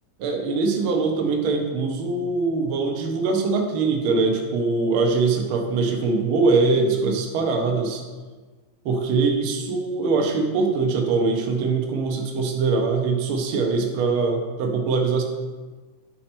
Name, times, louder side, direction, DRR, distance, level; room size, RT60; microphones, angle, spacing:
voice 1, 0.2-8.0 8.8-15.2, right 4 dB, 85° right, 2 dB, 1.1 m, -22 dB
11.5 x 4.3 x 4.3 m, 1.4 s
omnidirectional pair, 3.7 m